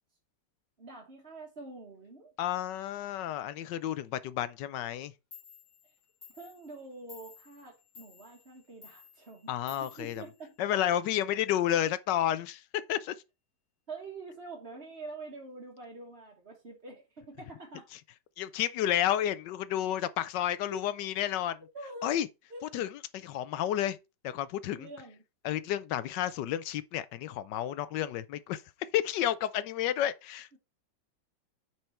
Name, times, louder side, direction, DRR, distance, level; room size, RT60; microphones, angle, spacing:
voice 1, 0.8-2.3 6.3-9.5 9.8-10.6 13.9-17.9 20.7-20.9 21.7-22.1 22.5-22.6 24.8-25.2 30.5-30.6, right 3 dB, 35° right, 1.7 m, -46 dB
voice 2, 2.4-5.1 9.5-10.2 10.6-13.1 18.4-21.6 22.0-22.3 22.7-24.0 24.2-24.9 25.4-28.6 28.9-30.6, left 11 dB, 75° left, 1.2 m, -31 dB
Clock, 5.0-5.1 5.3-11.0, left 7 dB, 45° left, 3.1 m, -55 dB
9.6 x 4.6 x 4.2 m
omnidirectional pair, 2.0 m